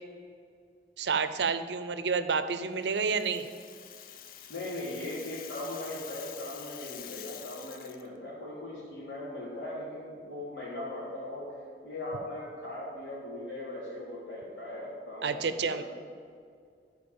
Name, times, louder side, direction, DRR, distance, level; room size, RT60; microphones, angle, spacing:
voice 1, 1.0-3.5 15.2-15.8, right 5 dB, 75° right, 11 dB, 0.6 m, -29 dB
Rattle (instrument), 2.8-8.1, left 10 dB, 50° left, 0.5 m, -47 dB
voice 2, 4.5-15.8, left 1 dB, 80° left, -7 dB, 3.1 m, -39 dB
12.0 x 4.7 x 7.2 m, 2.2 s
head